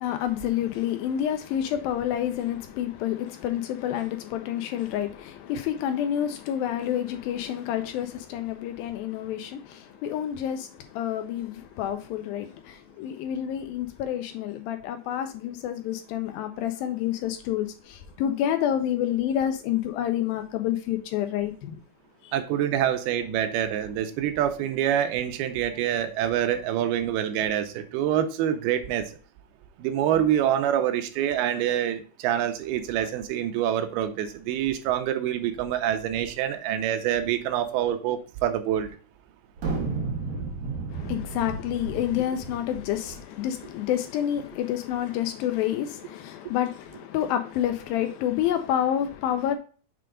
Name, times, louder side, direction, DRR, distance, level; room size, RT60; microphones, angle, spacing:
voice 1, 0.0-10.7 10.9-21.7 40.9-49.6, left 10 dB, 80° left, 2.3 m, -28 dB
voice 2, 22.3-29.1 29.8-38.9, right 10 dB, 85° right, 2.7 m, -26 dB
sound 1, 39.6-43.2, right 4 dB, 50° right, 3.6 m, -32 dB
6.7 x 3.8 x 4.9 m
omnidirectional pair, 4.4 m